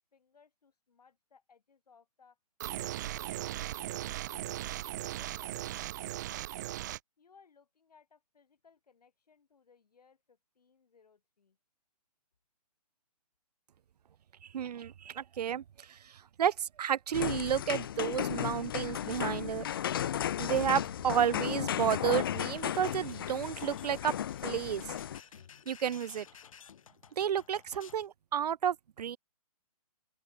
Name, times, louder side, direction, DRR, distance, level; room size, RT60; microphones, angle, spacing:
voice 1, 0.0-2.4 3.2-3.8 4.7-6.5 7.2-11.6, left 5 dB, 80° left, 5.1 m, -64 dB
sound 1, 2.6-7.0, right 14 dB, 30° right, 0.8 m, -38 dB
voice 2, 14.5-19.7 20.4-24.1 24.4-24.8 25.7-26.3 27.2-29.2, right 9 dB, 85° right, 0.4 m, -31 dB
sound 2, 17.1-25.2, left 10 dB, 35° left, 0.5 m, -35 dB
sound 3, 22.6-28.1, left 8 dB, 60° left, 1.0 m, -53 dB
open air
hypercardioid pair, 160°, 20 cm